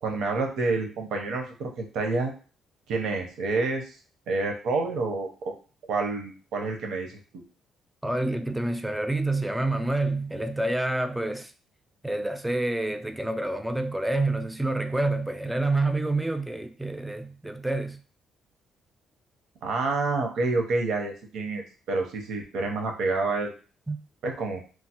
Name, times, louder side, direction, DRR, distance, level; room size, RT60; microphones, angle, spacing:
voice 1, 0.0-2.3 2.9-3.8 4.3-5.5 5.9-7.2 19.6-23.5 24.2-24.6, right 3 dB, 80° right, 0.6 m, -28 dB
voice 2, 8.0-11.5 12.0-18.0 23.9-24.0, right 2 dB, 10° right, 0.3 m, -28 dB
3.1 x 2.0 x 2.8 m
cardioid pair, 90°, 0 cm